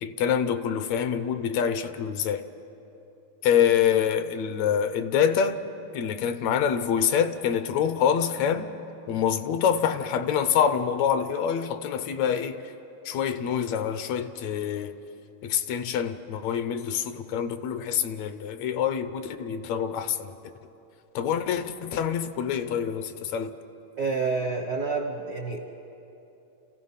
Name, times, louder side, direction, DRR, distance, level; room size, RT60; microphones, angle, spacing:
voice 1, 0.0-2.5 3.4-5.6 5.9-8.7 9.1-12.7 13.1-14.9 15.4-20.4 21.2-23.5, left 8 dB, 75° left, 1.9 m, -26 dB
voice 2, 24.0-25.6, right 4 dB, 75° right, 0.8 m, -28 dB
29.0 x 15.5 x 5.7 m
omnidirectional pair, 3.3 m